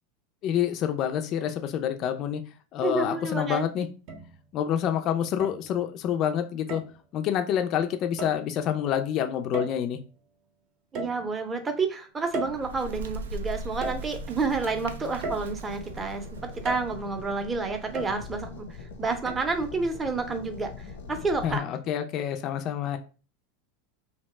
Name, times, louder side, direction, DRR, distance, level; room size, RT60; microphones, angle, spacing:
voice 1, 0.4-2.4 2.7-3.9 4.5-6.8 7.1-10.0 21.4-23.0, left 9 dB, 45° left, 7 dB, 0.3 m, -27 dB
voice 2, 2.8-3.6 10.9-16.3 16.6-18.7 19.0-20.7 21.1-21.6, right 4 dB, 20° right, 6 dB, 0.6 m, -29 dB
sound 1, 4.1-4.7 5.4-6.0 6.7-7.0 8.2-8.5 9.5-10.1 10.9-11.6 12.3-13.2 13.8-14.5 15.2-16.0 16.6-17.2 17.9-18.5 19.3-19.4, right 2 dB, 55° right, 0.6 m, -37 dB
Bird, 12.2-17.9, right 2 dB, 90° right, 0.3 m, -39 dB
sound 2, 15.6-21.6, left 4 dB, 90° left, 0.7 m, -43 dB
2.7 x 2.1 x 3.2 m, 0.35 s
hypercardioid pair, 110°, 0 cm